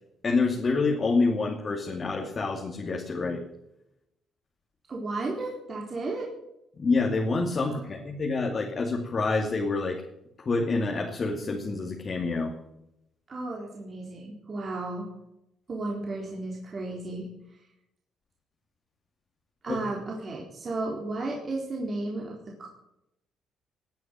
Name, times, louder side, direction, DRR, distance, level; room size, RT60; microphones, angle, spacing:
voice 1, 0.2-3.4 6.8-10.0 10.4-12.5 19.7-19.8, left 3 dB, 40° left, 1 dB, 2.6 m, -27 dB
voice 2, 4.9-6.3 7.6-7.8 13.3-15.1 15.7-17.3 19.6-22.7, right 2 dB, 40° right, -2 dB, 4.1 m, -34 dB
19.0 x 9.4 x 7.6 m, 0.84 s
cardioid pair, 90°, 0 cm